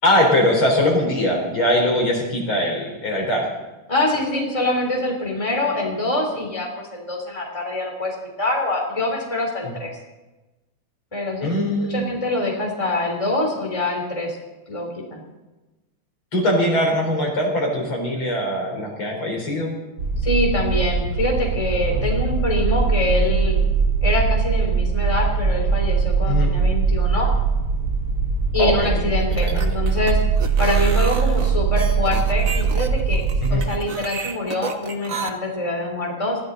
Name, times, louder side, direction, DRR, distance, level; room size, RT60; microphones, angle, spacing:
voice 1, 0.0-3.5 11.4-12.1 16.3-19.7 21.9-22.2 26.3-26.5 28.6-29.0 29.4-29.6 33.4-33.6, left 1 dB, 75° left, 0 dB, 4.9 m, -21 dB
voice 2, 3.9-9.9 11.1-14.4 14.7-15.2 20.2-23.6 24.0-27.3 28.5-30.2 30.6-33.2 33.5-36.4, left 2 dB, 15° left, 0 dB, 3.6 m, -25 dB
sound 1, 20.0-33.7, right 5 dB, 75° right, 3.6 m, -21 dB
sound 2, 29.2-35.3, right 5 dB, 45° right, 1.4 m, -31 dB
22.0 x 16.0 x 4.0 m, 1.1 s
omnidirectional pair, 2.3 m